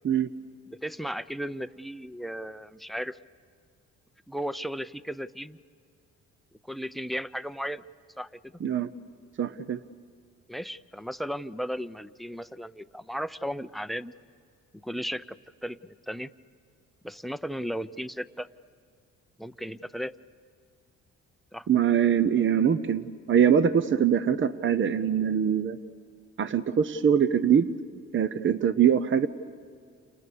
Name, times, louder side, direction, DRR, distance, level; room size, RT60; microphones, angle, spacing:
voice 1, 0.7-3.2 4.3-5.6 6.7-7.8 8.2-8.5 10.5-14.1 14.8-15.4 15.6-16.3 17.0-18.5 19.4-20.1 21.5-21.7, equal, ahead, 16 dB, 0.6 m, -35 dB
voice 2, 9.4-9.8 21.7-25.8 26.4-27.7 28.1-29.3, right 8 dB, 40° right, 13 dB, 0.8 m, -23 dB
30.0 x 27.0 x 6.8 m, 2.2 s
cardioid pair, 90°, 30 cm